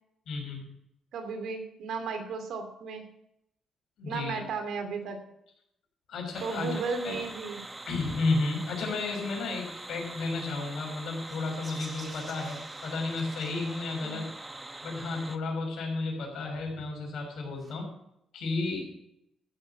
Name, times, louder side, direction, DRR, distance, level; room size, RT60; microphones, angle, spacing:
voice 1, 0.3-0.6 4.0-4.4 6.1-6.8 7.0-7.2 7.9-12.6 12.8-14.3 14.8-17.9 18.3-18.9, left 3 dB, 70° left, 0 dB, 6.0 m, -32 dB
voice 2, 1.1-3.1 4.1-5.2 6.4-7.7 14.0-14.2, right 4 dB, 75° right, 6 dB, 2.7 m, -35 dB
sound 1, 6.3-15.4, right 2 dB, 15° right, 0.9 m, -43 dB
sound 2, 11.2-14.7 17.5-17.8, right 3 dB, 35° right, 3.2 m, -51 dB
14.5 x 6.9 x 6.9 m, 0.77 s
cardioid pair, 90°, 0 cm